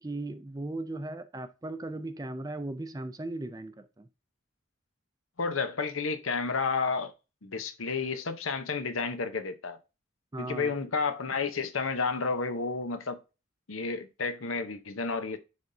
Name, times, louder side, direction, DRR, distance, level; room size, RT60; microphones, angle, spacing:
voice 1, 0.0-4.1 10.3-10.8, right 2 dB, 20° right, 0.4 m, -37 dB
voice 2, 5.4-7.1 7.4-9.8 10.4-13.2 13.7-15.4, left 4 dB, 90° left, 0.9 m, -31 dB
10.5 x 3.5 x 2.7 m
head